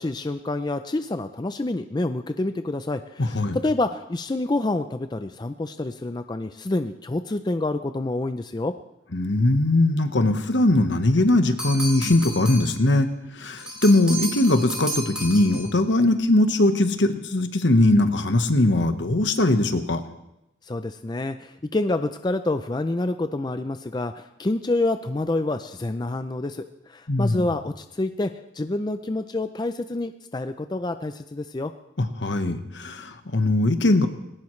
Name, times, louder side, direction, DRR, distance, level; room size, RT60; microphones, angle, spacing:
voice 1, 0.0-8.7 20.6-31.7, left 2 dB, 20° left, 9 dB, 0.4 m, -27 dB
voice 2, 3.2-3.6 9.1-13.1 13.4-20.0 27.1-27.4 32.0-34.1, left 2 dB, 65° left, 8 dB, 1.2 m, -20 dB
sound 1, 11.6-12.8 13.6-15.8, right 1 dB, 5° right, 2.8 m, -33 dB
19.5 x 17.5 x 3.2 m, 0.89 s
head